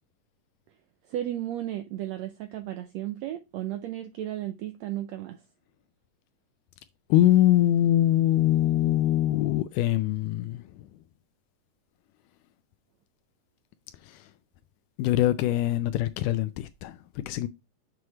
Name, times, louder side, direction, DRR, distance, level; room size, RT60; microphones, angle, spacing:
voice 1, 1.1-5.4, right 13 dB, 90° right, 1.5 m, -34 dB
voice 2, 7.1-10.9 14.0-14.3 15.0-17.5, left 13 dB, 80° left, 2.0 m, -23 dB
7.7 x 3.2 x 5.7 m
omnidirectional pair, 3.8 m